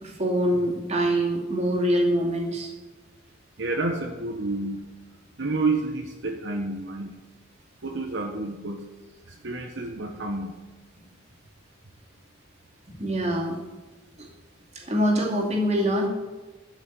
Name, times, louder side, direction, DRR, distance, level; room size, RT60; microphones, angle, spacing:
voice 1, 0.0-2.7 12.9-13.6 14.2-14.3 14.7-16.1, equal, 35° right, 0 dB, 2.6 m, -24 dB
voice 2, 3.6-4.9 5.4-7.1 7.8-8.8 9.3-10.5, right 3 dB, 65° right, 2 dB, 1.2 m, -29 dB
12.0 x 6.4 x 8.3 m, 1.2 s
head